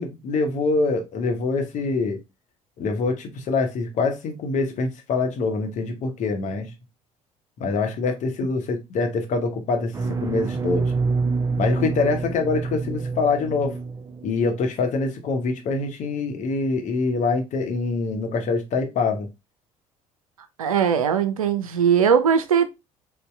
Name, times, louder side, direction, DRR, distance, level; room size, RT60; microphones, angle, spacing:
voice 1, 0.0-2.2 2.8-6.7 7.6-9.9 10.2-10.8 11.6-13.8 14.2-19.3, left 4 dB, 45° left, 0.9 m, -25 dB
sound 1, 9.9-14.5, right 4 dB, 20° right, 0.6 m, -27 dB
voice 2, 20.6-22.7, right 7 dB, 80° right, 0.4 m, -19 dB
4.0 x 2.2 x 3.3 m
figure-of-eight pair, 55°, 18 cm